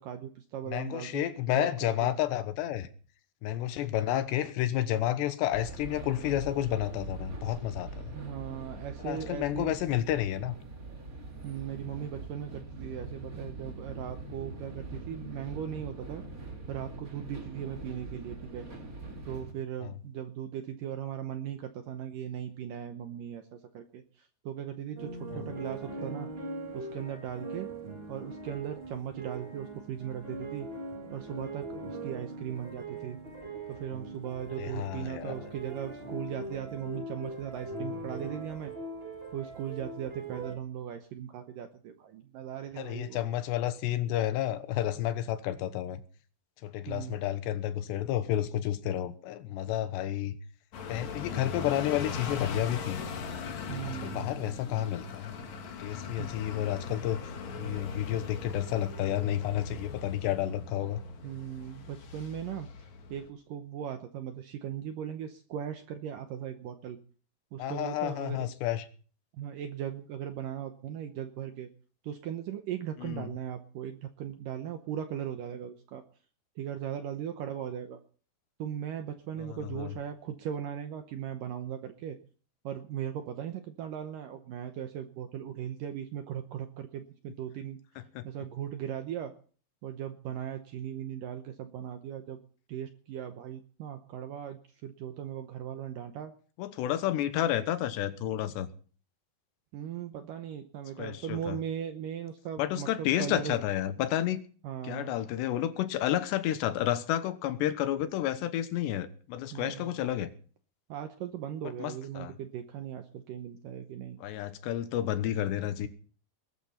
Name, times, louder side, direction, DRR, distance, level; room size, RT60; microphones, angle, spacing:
voice 1, 0.0-1.3 1.5-2.1 8.1-9.8 11.4-16.2 16.7-18.7 19.3-26.3 26.7-27.7 28.1-30.7 31.1-33.2 33.7-38.7 39.3-43.2 46.9-47.2 53.7-54.3 56.2-56.3 61.2-62.7 63.1-67.0 67.5-68.5 69.3-71.7 72.0-76.0 76.6-78.0 78.6-82.2 82.6-87.8 88.2-89.3 89.8-92.4 92.7-96.3 99.7-103.6 104.6-105.2 109.5-110.0 110.9-114.2, right 9 dB, 75° right, 2.1 m, -38 dB
voice 2, 0.7-2.9 3.4-8.2 9.0-10.6 19.8-19.9 25.3-25.5 34.6-35.5 42.8-46.0 46.6-50.4 50.9-53.0 53.8-55.4 55.8-57.2 57.6-61.0 67.6-68.9 73.0-73.3 79.4-80.0 88.2-88.3 96.6-98.7 101.0-101.6 102.6-104.4 104.8-110.3 111.8-112.3 114.2-115.9, left 12 dB, 85° left, 3.2 m, -31 dB
sound 1, 5.5-19.5, right 2 dB, 30° right, 1.6 m, -43 dB
sound 2, 25.0-40.5, right 2 dB, 55° right, 0.6 m, -41 dB
sound 3, 50.7-63.3, left 5 dB, 50° left, 2.5 m, -40 dB
21.0 x 12.0 x 4.3 m
omnidirectional pair, 4.9 m